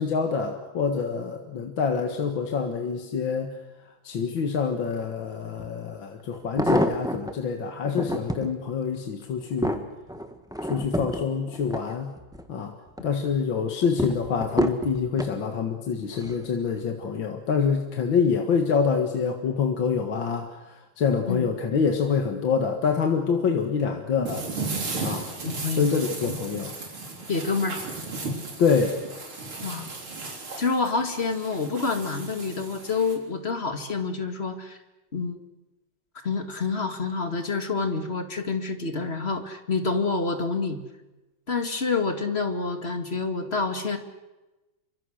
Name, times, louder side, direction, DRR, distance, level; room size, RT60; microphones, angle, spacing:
voice 1, 0.0-3.6 4.0-9.9 10.6-12.1 12.5-12.8 13.0-24.5 25.0-25.3 25.7-26.8 28.6-29.0, left 6 dB, 65° left, 4 dB, 2.3 m, -26 dB
sound 1, 5.6-5.7 6.3-7.3 7.8-8.5 9.1-12.5 12.9-13.3 14.0-15.4 16.1-16.5 16.8-16.9, equal, ahead, 1.3 m, -29 dB
Walking through leaves, 24.3-33.2, right 3 dB, 85° right, 4.7 m, -35 dB
voice 2, 27.3-27.8 29.6-29.9 30.6-34.8 35.1-35.4 36.2-40.8 41.5-44.0, left 4 dB, 30° left, 6 dB, 2.1 m, -27 dB
28.0 x 24.5 x 6.5 m, 1.1 s
omnidirectional pair, 2.3 m